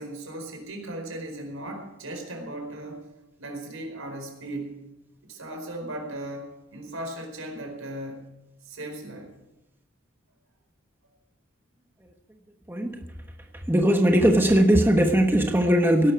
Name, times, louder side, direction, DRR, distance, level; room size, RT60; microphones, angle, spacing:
voice 1, 0.0-3.1 3.4-4.8 5.2-8.3 8.6-9.3, right 1 dB, 85° right, 3 dB, 4.7 m, -37 dB
voice 2, 13.7-16.1, equal, 10° right, 3 dB, 1.2 m, -19 dB
17.5 x 12.0 x 4.7 m, 0.95 s
head